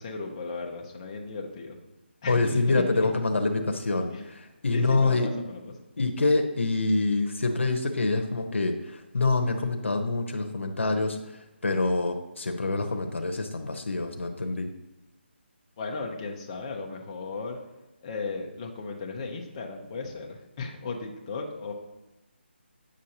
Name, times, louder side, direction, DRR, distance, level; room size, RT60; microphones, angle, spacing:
voice 1, 0.0-1.8 2.2-2.8 4.1-4.3 4.7-5.7 15.8-17.6 18.0-21.7, left 4 dB, 25° left, 1 dB, 0.8 m, -36 dB
voice 2, 2.3-5.3 6.0-11.2 11.6-14.7, left 3 dB, 85° left, 4 dB, 0.9 m, -26 dB
8.7 x 6.3 x 2.8 m, 0.98 s
hypercardioid pair, 165°, 6 cm